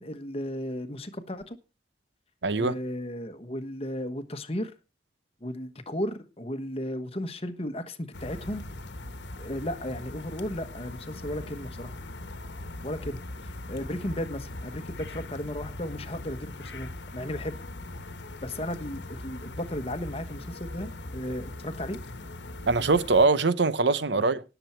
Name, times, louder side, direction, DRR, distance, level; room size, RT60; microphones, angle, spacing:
voice 1, 0.0-1.6 2.5-4.7 5.4-8.6 9.4-12.0 12.8-17.6 18.4-22.0 24.1-24.2, left 1 dB, 35° left, 1.2 m, -35 dB
voice 2, 2.4-2.7 22.7-24.4, right 3 dB, 80° right, 0.8 m, -22 dB
sound 1, 8.1-23.3, left 2 dB, 85° left, 1.2 m, -40 dB
18.0 x 7.1 x 4.4 m
head